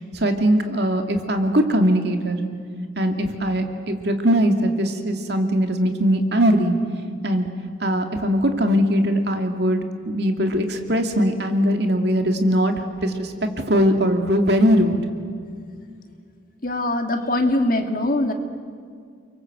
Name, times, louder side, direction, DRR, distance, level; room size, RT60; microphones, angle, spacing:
voice 1, 0.0-2.4 3.0-6.7 7.2-7.5 7.8-12.8 13.0-13.3 13.7-15.0, equal, 55° right, 4 dB, 2.4 m, -20 dB
voice 2, 16.6-18.3, left 1 dB, 45° left, 5 dB, 2.2 m, -22 dB
30.0 x 23.0 x 8.0 m, 2.2 s
head